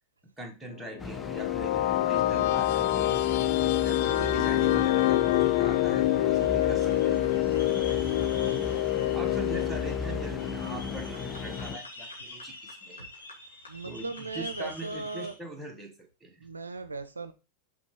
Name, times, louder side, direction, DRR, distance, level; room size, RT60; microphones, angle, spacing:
voice 1, 0.4-3.2 3.8-7.3 8.5-13.1 13.8-16.5, right 2 dB, 5° right, 1 dB, 1.6 m, -42 dB
sound 1, 0.9-11.8, left 14 dB, 50° left, 0.3 m, -26 dB
sound 2, 1.0-11.8, left 3 dB, 10° left, 0.6 m, -37 dB
sound 3, 3.1-15.3, left 2 dB, 75° left, 2.1 m, -47 dB
voice 2, 13.7-15.3 16.4-17.3, right 3 dB, 75° right, 11 dB, 0.5 m, -38 dB
5.9 x 4.8 x 3.7 m, 0.31 s
figure-of-eight pair, 90°, 0 cm